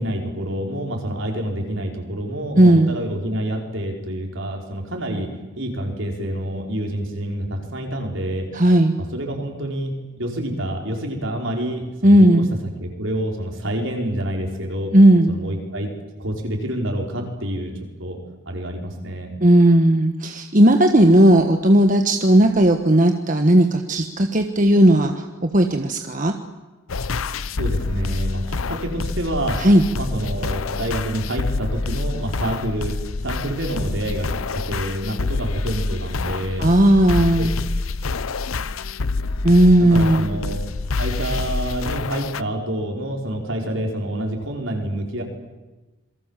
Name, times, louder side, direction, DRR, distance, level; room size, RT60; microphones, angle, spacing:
voice 1, 0.0-5.3 5.6-8.5 9.1-12.4 12.8-14.9 15.3-15.9 16.2-17.7 18.0-18.2 18.5-19.4 27.6-29.6 29.9-33.0 33.2-36.7 37.2-37.5 39.9-40.6 41.0-45.2, right 1 dB, 70° right, 1 dB, 5.3 m, -27 dB
voice 2, 2.6-2.9 8.5-8.9 12.0-12.5 14.9-15.4 19.4-26.3 29.6-29.8 36.6-37.5 39.4-40.3, right 1 dB, 40° right, 5 dB, 1.3 m, -15 dB
sound 1, 26.9-42.4, left 3 dB, 85° left, 0.8 m, -27 dB
27.0 x 23.0 x 7.5 m, 1.2 s
head